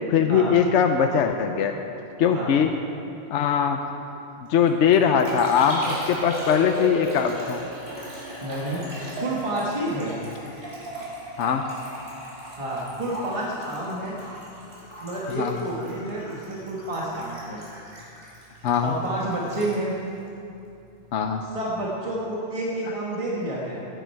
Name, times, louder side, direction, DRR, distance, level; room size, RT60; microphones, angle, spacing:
voice 1, 0.1-1.7 2.2-2.7 3.3-3.8 4.5-7.6 11.4-11.6 15.3-15.6 18.6-18.9 21.1-21.4, left 7 dB, 75° left, 5 dB, 1.0 m, -21 dB
Liquid, 4.5-21.1 21.3-21.9, equal, 50° right, 3.6 m, -37 dB
voice 2, 8.4-8.9 9.2-10.2 12.6-14.2 15.0-17.6 18.8-19.9 21.4-23.8, right 1 dB, 25° right, -5 dB, 1.7 m, -29 dB
17.0 x 10.5 x 4.6 m, 2.8 s
omnidirectional pair, 1.2 m